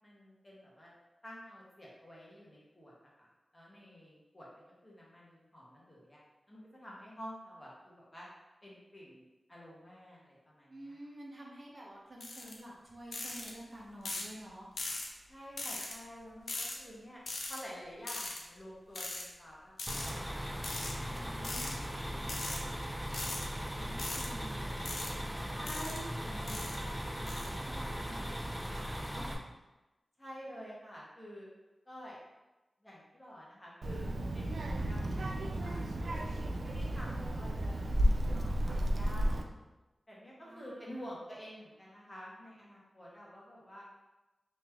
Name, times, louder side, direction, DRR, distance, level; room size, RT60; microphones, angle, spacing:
voice 1, 0.0-0.9 1.2-3.3 3.5-8.3 8.6-9.2 9.5-10.9 15.3-17.2 17.5-23.4 23.7-24.1 25.5-27.1 30.2-31.5 31.8-32.2 32.8-34.5 34.9-39.4 40.1-43.8, equal, 30° left, -5 dB, 1.3 m, -50 dB
voice 2, 10.7-14.7 21.1-22.3 23.8-25.9 26.4-29.3 40.4-41.1, right 1 dB, 50° right, -4 dB, 0.9 m, -50 dB
sound 1, 12.2-12.5 13.1-13.5 14.0-14.3 14.8-15.1 15.6-15.9 16.5-16.8 17.3-17.6 18.1-18.4 18.9-19.2 19.8-20.1 20.6-20.9 21.4-21.7 22.2-22.6 23.1-23.5 24.0-24.3 24.8-25.1 25.7-26.0 26.5-26.8 27.3-27.5, left 2 dB, 80° left, 0.6 m, -39 dB
sound 2, 19.9-29.3, equal, 10° right, 0.5 m, -39 dB
Child speech kid speaking, 33.8-39.4, equal, 80° right, 0.3 m, -32 dB
3.2 x 2.9 x 3.5 m, 1.1 s
cardioid pair, 60°, 0 cm